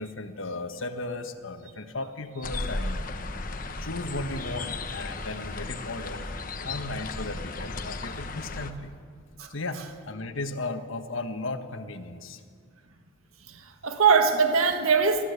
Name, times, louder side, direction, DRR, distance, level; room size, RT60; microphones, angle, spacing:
voice 1, 0.0-3.3 3.8-6.3 6.6-8.9 9.5-12.4, left 2 dB, 70° left, 7 dB, 1.5 m, -35 dB
sound 1, 2.4-8.7, left 2 dB, 40° left, 1.2 m, -35 dB
voice 2, 13.5-15.2, right 5 dB, 90° right, 6 dB, 1.7 m, -22 dB
24.5 x 15.5 x 8.3 m, 2.1 s
head